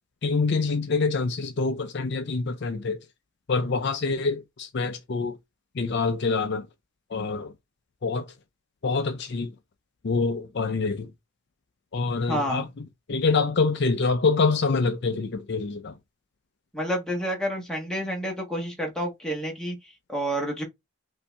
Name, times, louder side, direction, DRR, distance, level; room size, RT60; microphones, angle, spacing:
voice 1, 0.2-3.0 3.5-5.4 5.7-6.7 7.1-7.5 8.0-8.3 8.8-9.5 10.0-11.1 11.9-16.0, left 4 dB, 50° left, 0.5 m, -26 dB
voice 2, 12.3-12.6 16.7-20.6, equal, 5° left, 1.5 m, -29 dB
5.5 x 2.7 x 3.3 m
head